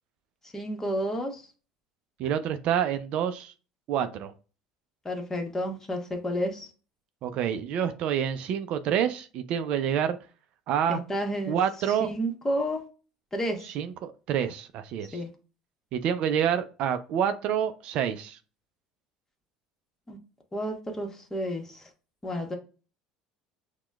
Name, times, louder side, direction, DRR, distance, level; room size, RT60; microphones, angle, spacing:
voice 1, 0.5-1.5 5.0-6.7 10.9-11.6 11.9-12.8 13.3-13.7 15.1-15.3 20.1-20.2 20.5-21.9 22.2-22.6, equal, 20° left, 1.1 m, -31 dB
voice 2, 2.2-3.5 3.9-4.3 7.2-10.2 10.7-11.0 11.5-12.1 13.7-15.2 15.9-18.4, right 9 dB, 60° right, 0.4 m, -27 dB
5.9 x 2.2 x 2.2 m
hypercardioid pair, 75°, 2 cm